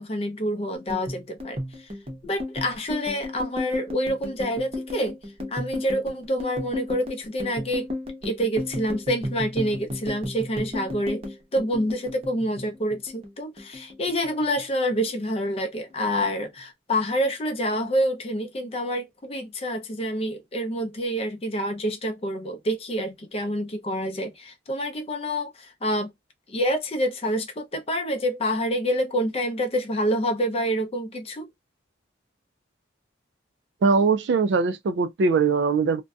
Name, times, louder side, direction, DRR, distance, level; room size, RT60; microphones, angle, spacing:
voice 1, 0.0-1.9 2.2-5.2 5.5-7.9 8.2-11.2 11.5-26.1 26.5-31.5, equal, 30° left, 0.5 m, -27 dB
sound 1, 0.7-13.3 13.6-14.6 14.9-15.3 15.6-16.2, left 1 dB, 30° right, 0.7 m, -34 dB
voice 2, 33.8-36.0, right 4 dB, 60° right, 0.3 m, -21 dB
2.6 x 2.2 x 2.2 m
head